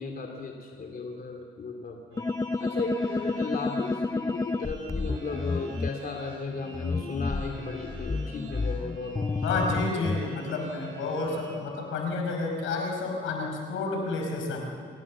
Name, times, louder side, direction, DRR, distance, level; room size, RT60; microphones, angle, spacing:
voice 1, 0.0-2.3 2.6-9.2 9.5-10.2, left 3 dB, 45° left, 3 dB, 2.7 m, -35 dB
sound 1, 2.1-11.6, right 2 dB, 85° right, 6.8 m, -47 dB
sound 2, 2.2-5.9 6.7-10.3, left 3 dB, 15° left, 0.5 m, -30 dB
voice 2, 9.4-14.6, left 3 dB, 85° left, 2 dB, 5.3 m, -30 dB
26.5 x 18.5 x 7.4 m, 2.3 s
cardioid pair, 90°, 20 cm